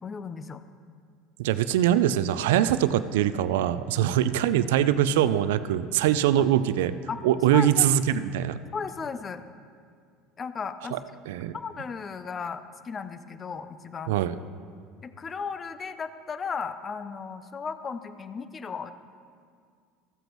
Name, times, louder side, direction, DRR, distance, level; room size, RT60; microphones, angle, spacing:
voice 1, 0.0-0.6 4.0-4.2 6.4-6.5 7.1-7.2 7.5-7.9 8.7-9.4 10.4-11.0 11.5-14.1 15.0-18.9, left 5 dB, 30° left, 11 dB, 0.5 m, -35 dB
voice 2, 1.4-7.0 7.2-8.6 10.9-11.0 11.3-11.5 14.1-14.4, right 11 dB, 85° right, 13 dB, 0.4 m, -23 dB
15.0 x 7.9 x 3.1 m, 2.1 s
supercardioid pair, 100°, 0 cm